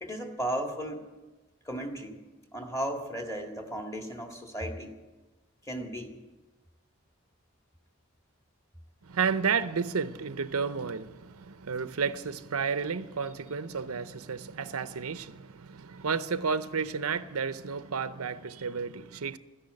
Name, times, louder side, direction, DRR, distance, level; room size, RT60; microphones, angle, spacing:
voice 1, 0.0-1.1 1.7-2.2 2.5-4.9 5.6-6.2, right 1 dB, 15° left, 1.8 m, -35 dB
voice 2, 9.0-19.4, right 5 dB, 90° right, 0.7 m, -32 dB
13.5 x 10.5 x 9.9 m
head